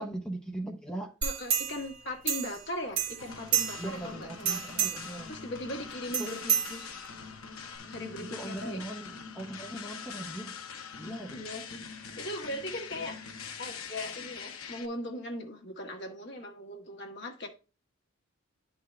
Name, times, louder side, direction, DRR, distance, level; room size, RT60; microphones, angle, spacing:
voice 1, 0.0-1.2 3.8-5.3 6.2-6.3 8.2-10.5 11.0-11.4, right 1 dB, 5° left, 0.8 m, -39 dB
voice 2, 1.2-4.6 5.3-6.9 7.9-8.8 11.3-13.2 13.6-17.5, left 1 dB, 50° left, 1.5 m, -39 dB
sound 1, 1.2-2.7 3.0-4.0 4.4-5.2 6.1-7.2 7.7-7.8, right 8 dB, 50° right, 1.6 m, -30 dB
sound 2, 3.2-14.9, left 6 dB, 75° left, 1.0 m, -43 dB
10.5 x 4.0 x 3.2 m
head